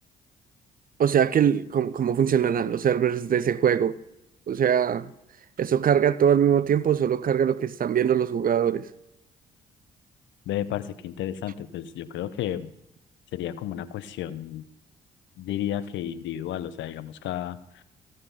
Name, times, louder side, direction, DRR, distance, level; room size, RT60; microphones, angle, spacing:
voice 1, 1.0-4.0 4.5-5.1 5.6-8.9, right 8 dB, 45° right, 0.7 m, -22 dB
voice 2, 10.5-12.7 13.3-14.6 15.4-17.8, left 11 dB, 65° left, 0.8 m, -32 dB
15.5 x 7.8 x 5.5 m
hypercardioid pair, 50°, 21 cm